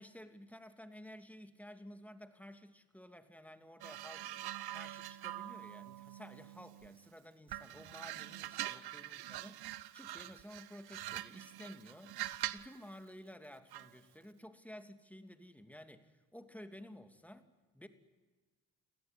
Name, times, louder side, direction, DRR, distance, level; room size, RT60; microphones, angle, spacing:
voice 1, 0.0-4.3 4.7-12.2 12.5-17.5 17.7-17.9, equal, 5° left, 8 dB, 2.7 m, -53 dB
sound 1, 3.8-7.0 7.5-12.8 13.7-14.0, right 14 dB, 75° right, 0.9 m, -44 dB
28.0 x 17.0 x 10.0 m, 1.3 s
supercardioid pair, 55°, 39 cm